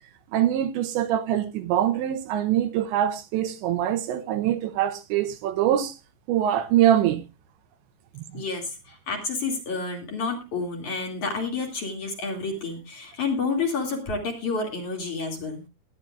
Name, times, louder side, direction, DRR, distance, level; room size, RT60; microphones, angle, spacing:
voice 1, 0.3-6.0 6.3-7.2 8.2-8.3, right 11 dB, 80° right, 3.0 m, -23 dB
voice 2, 8.3-15.6, left 4 dB, 45° left, 3.2 m, -29 dB
19.5 x 11.0 x 2.4 m
omnidirectional pair, 5.4 m